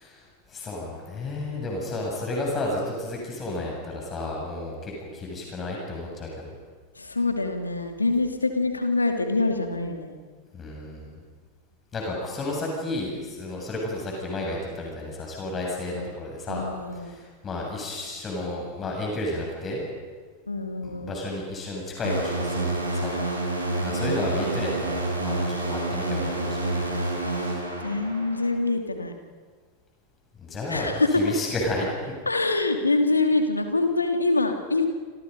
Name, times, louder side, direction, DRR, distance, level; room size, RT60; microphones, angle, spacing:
voice 1, 0.0-6.3 10.5-11.2 11.9-16.6 17.0-19.8 20.8-23.1 23.8-27.0 30.4-30.9 31.1-32.2, left 2 dB, 20° left, -1 dB, 7.5 m, -32 dB
voice 2, 7.0-10.1 15.9-16.0 16.5-17.2 20.5-21.2 23.8-24.4 27.8-29.1 30.7-31.2 32.3-34.9, left 3 dB, 80° left, 5 dB, 2.7 m, -25 dB
sound 1, 22.0-28.5, right 2 dB, 85° right, 6.5 m, -28 dB
28.0 x 27.5 x 5.4 m, 1.5 s
figure-of-eight pair, 90°, 0 cm